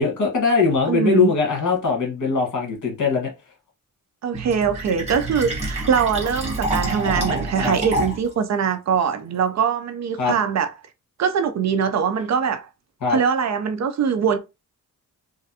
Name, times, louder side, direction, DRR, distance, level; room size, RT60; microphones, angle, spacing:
voice 1, 0.0-3.3 7.6-7.8 10.2-10.3 13.0-13.2, left 4 dB, 60° left, 1.4 m, -21 dB
voice 2, 0.9-1.3 4.2-10.7 11.2-12.7 13.1-14.4, right 7 dB, 55° right, 0.4 m, -22 dB
Fill (with liquid), 4.3-8.3, right 1 dB, 20° right, 1.3 m, -27 dB
3.2 x 2.5 x 2.6 m
wide cardioid pair, 150°, 34 cm